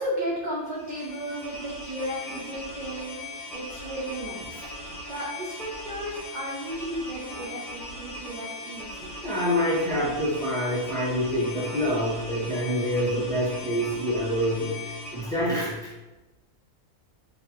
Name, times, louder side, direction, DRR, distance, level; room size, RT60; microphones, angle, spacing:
voice 1, 0.0-4.4 4.9-9.1, equal, 40° right, -6 dB, 0.7 m, -34 dB
sound 1, 0.7-15.5, left 1 dB, 40° left, 1.0 m, -39 dB
voice 2, 9.2-14.8 15.1-15.8, equal, 5° left, -8 dB, 1.2 m, -26 dB
4.3 x 2.9 x 2.9 m, 1.1 s
omnidirectional pair, 1.5 m